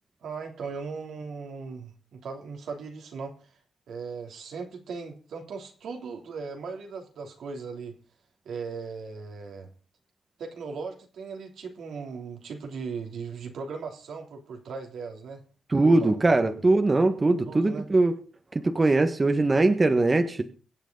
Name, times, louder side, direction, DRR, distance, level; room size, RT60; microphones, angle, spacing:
voice 1, 0.2-3.3 3.9-7.9 8.4-9.7 10.4-15.4 15.8-16.6 17.4-17.9, right 5 dB, 80° right, 3 dB, 3.1 m, -38 dB
voice 2, 15.7-18.1 18.6-20.4, right 2 dB, 30° right, 7 dB, 1.5 m, -21 dB
23.5 x 8.1 x 4.0 m, 0.38 s
cardioid pair, 80°, 0 cm